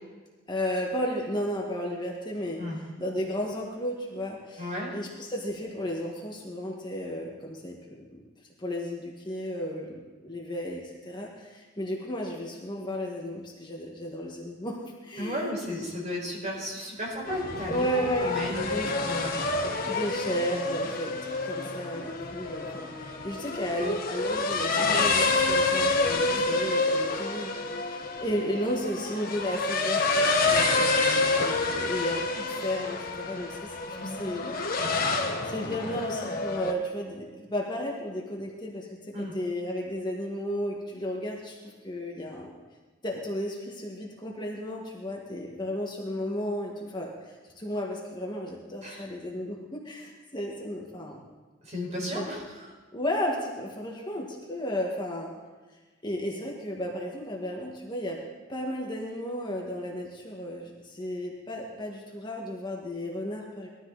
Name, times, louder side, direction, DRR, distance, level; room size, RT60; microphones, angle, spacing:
voice 1, 0.5-8.2 8.6-15.9 17.7-18.9 19.9-21.2 21.4-34.5 34.9-35.1 35.4-42.5 43.0-51.2 52.1-52.3 52.9-55.3 56.0-58.2 58.5-63.7, equal, 25° left, -2 dB, 1.8 m, -34 dB
voice 2, 4.6-4.9 15.2-17.9 18.2-19.3 26.2-26.5 39.1-39.3 48.8-49.1 51.6-52.7, left 1 dB, 35° right, -2 dB, 4.9 m, -34 dB
sound 1, 17.3-36.7, left 3 dB, 45° left, 1.5 m, -28 dB
20.5 x 13.5 x 4.1 m, 1.3 s
head